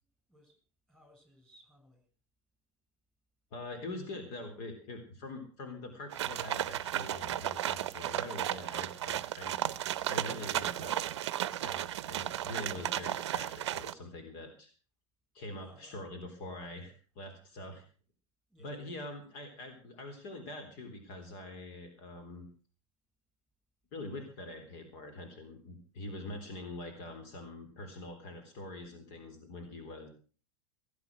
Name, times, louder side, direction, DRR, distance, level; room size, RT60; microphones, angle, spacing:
voice 1, 0.3-0.6 0.9-2.1 15.6-16.1 16.6-16.9 18.5-18.7, equal, 5° left, 5 dB, 6.7 m, -62 dB
voice 2, 3.5-9.6 10.1-11.2 11.6-14.7 15.3-17.8 18.6-22.5 23.9-30.1, left 2 dB, 50° left, 6 dB, 3.7 m, -44 dB
sound 1, 6.1-13.9, right 12 dB, 65° right, 0.7 m, -34 dB
18.0 x 9.0 x 6.3 m, 0.40 s
figure-of-eight pair, 85°, 16 cm